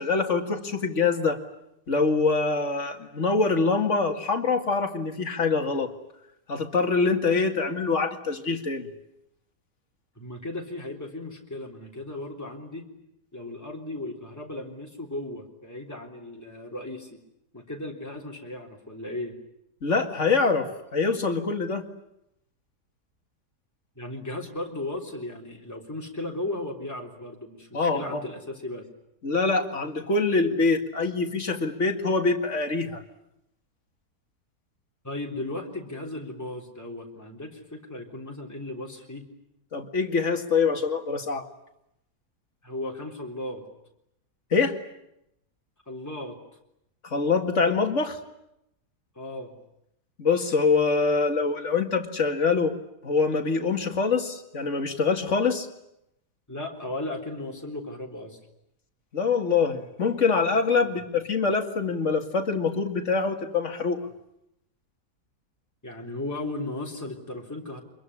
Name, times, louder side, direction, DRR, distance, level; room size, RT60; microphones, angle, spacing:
voice 1, 0.0-1.4 1.9-5.9 6.5-8.9 19.8-21.8 27.7-28.2 29.2-33.0 39.7-41.5 44.5-44.8 47.0-48.2 50.2-52.8 53.0-55.7 59.1-64.1, left 4 dB, 45° left, 5 dB, 2.4 m, -24 dB
voice 2, 10.2-12.8 13.3-17.2 17.5-19.3 24.0-28.9 35.0-39.2 42.6-43.6 45.9-46.4 49.2-49.5 56.5-58.4 60.8-61.0 65.8-67.8, left 2 dB, 10° left, -1 dB, 3.6 m, -36 dB
25.5 x 22.5 x 9.9 m, 0.82 s
omnidirectional pair, 1.7 m